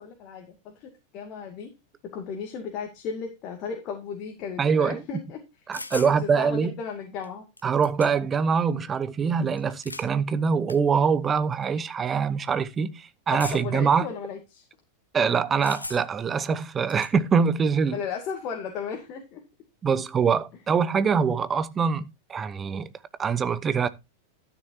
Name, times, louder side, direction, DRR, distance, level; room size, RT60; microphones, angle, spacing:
voice 1, 0.0-1.7 2.1-5.4 5.9-7.5 13.3-14.6 17.9-19.4, left 6 dB, 40° left, 2.3 m, -35 dB
voice 2, 4.6-5.0 5.7-6.7 7.6-14.1 15.1-18.0 19.8-22.9 23.2-23.9, right 6 dB, 20° right, 0.9 m, -24 dB
sound 1, 5.7-6.2 7.2-7.3 7.6-8.4 9.6-10.1 10.7-10.8 11.6-11.8 13.4-13.8 15.6-16.2 16.6-17.1, left 2 dB, 80° left, 0.8 m, -38 dB
12.5 x 10.0 x 2.8 m
figure-of-eight pair, 90°, 0 cm